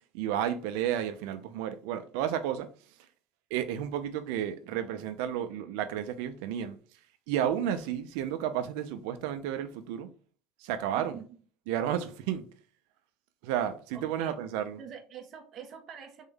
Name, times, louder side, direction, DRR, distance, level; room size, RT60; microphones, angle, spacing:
voice 1, 0.1-2.7 3.5-6.8 7.3-10.1 10.6-11.2 11.7-12.4 13.4-14.8, right 10 dB, 85° right, 0.7 m, -32 dB
voice 2, 10.9-11.4 13.9-14.4 14.8-16.3, right 7 dB, 45° right, 1.2 m, -45 dB
4.1 x 3.7 x 3.4 m
cardioid pair, 130°, 0 cm